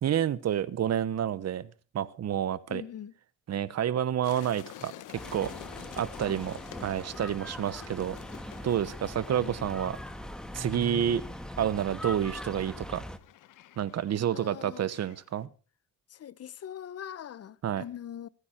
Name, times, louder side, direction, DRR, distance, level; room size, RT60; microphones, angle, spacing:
voice 1, 0.0-1.7 1.9-2.8 3.5-5.5 6.0-8.2 8.6-10.0 10.5-11.2 11.6-13.0 13.8-15.5 17.6-17.8, right 10 dB, 60° right, 1.1 m, -29 dB
voice 2, 2.7-3.1 9.4-9.7 14.3-14.9 16.1-18.3, left 10 dB, 55° left, 0.9 m, -42 dB
sound 1, 4.2-15.4, left 13 dB, 85° left, 1.2 m, -50 dB
sound 2, 5.1-13.2, left 1 dB, ahead, 1.6 m, -41 dB
24.5 x 9.8 x 4.4 m
cardioid pair, 90°, 30 cm